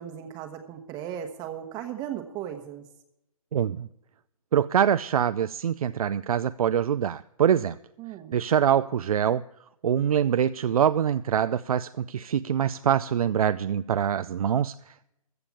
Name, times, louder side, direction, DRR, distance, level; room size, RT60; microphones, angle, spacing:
voice 1, 0.0-2.8 8.0-8.4, right 10 dB, 20° right, 5 dB, 1.1 m, -36 dB
voice 2, 3.5-3.9 4.5-7.8 8.3-9.4 9.8-15.1, right 9 dB, 70° right, 12 dB, 0.5 m, -24 dB
14.5 x 6.9 x 7.2 m, 0.82 s
hypercardioid pair, 140°, 19 cm